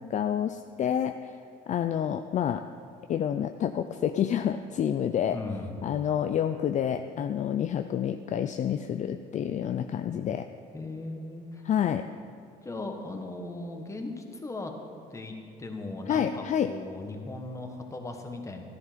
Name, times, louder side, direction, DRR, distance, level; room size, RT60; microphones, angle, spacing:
voice 1, 0.0-1.4 1.7-2.6 3.1-5.4 5.8-10.5 11.7-12.1 16.1-16.7, left 9 dB, 45° left, 8 dB, 0.5 m, -28 dB
voice 2, 5.3-5.8 10.7-11.6 11.9-12.1 12.6-14.8 15.1-18.6, left 2 dB, 20° left, 3 dB, 1.6 m, -38 dB
13.5 x 11.0 x 5.2 m, 2.5 s
cardioid pair, 110°, 17 cm